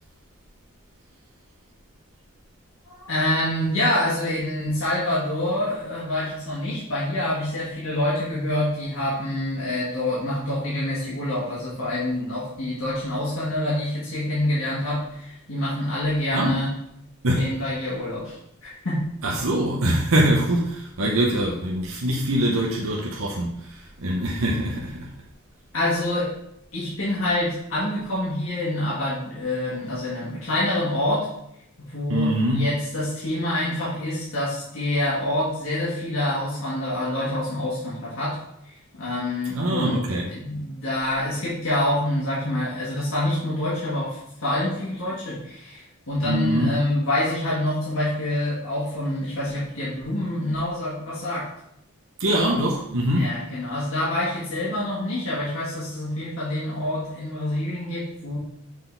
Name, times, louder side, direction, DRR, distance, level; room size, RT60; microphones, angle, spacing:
voice 1, 2.9-16.7 17.4-19.0 25.7-26.3 26.7-31.3 31.9-38.4 38.7-40.0 40.3-51.5 53.1-58.4, left 1 dB, 70° left, -8 dB, 1.8 m, -26 dB
voice 2, 19.2-25.1 32.1-32.7 39.5-40.3 46.2-46.8 52.2-53.3, right 1 dB, 70° right, -3 dB, 0.9 m, -23 dB
6.4 x 4.0 x 3.9 m, 0.75 s
head